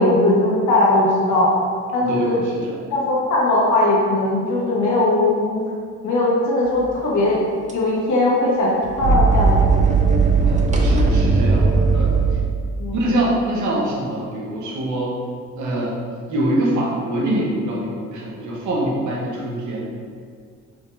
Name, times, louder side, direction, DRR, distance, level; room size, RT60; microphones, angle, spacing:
voice 1, 0.0-1.5 1.9-2.4 2.9-5.6 6.0-7.4 7.7-9.9 12.8-13.0, left 2 dB, 70° left, -5 dB, 1.3 m, -19 dB
voice 2, 2.1-2.8 10.4-12.1 12.9-15.2 15.6-16.0 16.3-19.9, right 1 dB, 70° right, -3 dB, 1.0 m, -24 dB
sound 1, 7.7-7.8 8.9-12.6, right 4 dB, 25° right, 0.5 m, -17 dB
4.9 x 3.6 x 2.6 m, 2.1 s
cardioid pair, 90°, 30 cm